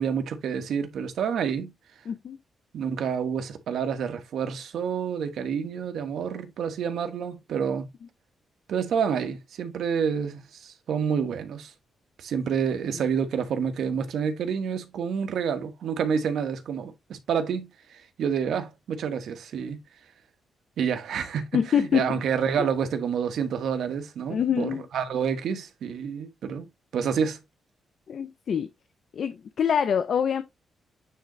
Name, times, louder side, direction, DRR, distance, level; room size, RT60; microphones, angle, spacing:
voice 1, 0.0-1.7 2.7-7.9 8.7-11.7 12.2-19.8 20.8-26.7 26.9-27.4, right 7 dB, 70° right, 1.3 m, -28 dB
voice 2, 2.1-2.4 21.5-22.2 24.3-24.8 28.1-28.7 29.1-30.4, left 8 dB, 50° left, 0.5 m, -25 dB
9.1 x 3.8 x 3.1 m
wide cardioid pair, 165°, 0 cm